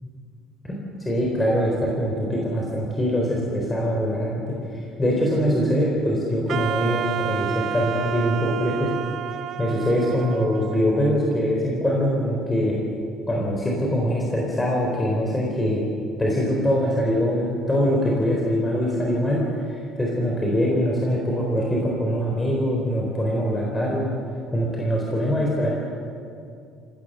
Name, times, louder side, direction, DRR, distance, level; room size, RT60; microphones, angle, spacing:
voice 1, 0.6-4.6 5.0-8.9 9.6-12.8 13.3-15.8 16.2-19.4 20.0-24.1 24.5-25.7, equal, 15° left, -2 dB, 3.9 m, -23 dB
Wind instrument woodwind instrument, 6.5-11.5, right 10 dB, 50° right, 0.6 m, -31 dB
27.5 x 17.0 x 6.8 m, 2.4 s
cardioid pair, 130°, 0 cm